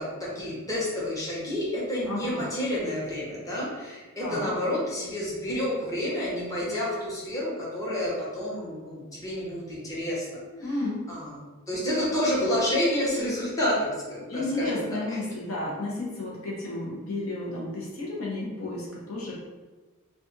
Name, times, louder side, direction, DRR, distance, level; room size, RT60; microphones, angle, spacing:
voice 1, 0.0-10.2 10.6-10.7 11.1-11.4 11.7-14.8 15.1-15.2, left 1 dB, 15° left, -7 dB, 0.8 m, -29 dB
voice 2, 2.1-2.5 4.2-4.5 10.6-11.0 14.3-19.3, left 2 dB, 85° left, -4 dB, 0.8 m, -32 dB
2.5 x 2.5 x 3.9 m, 1.3 s
head